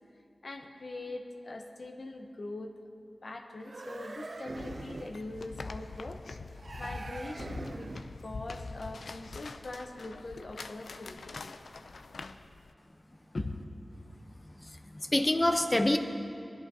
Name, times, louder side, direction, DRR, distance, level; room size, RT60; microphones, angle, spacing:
voice 1, 0.4-2.7 3.2-6.2 6.8-7.9 8.2-11.4 13.3-13.5, left 2 dB, 65° left, 3 dB, 0.8 m, -42 dB
sound 1, 3.6-5.2 6.6-8.2, right 2 dB, 60° right, 0.5 m, -43 dB
sound 2, 4.5-12.7, left 3 dB, 85° left, 0.4 m, -44 dB
voice 2, 14.6-16.0, left 1 dB, 25° left, 6 dB, 0.7 m, -27 dB
20.5 x 11.0 x 2.8 m, 2.6 s
cardioid pair, 50°, 0 cm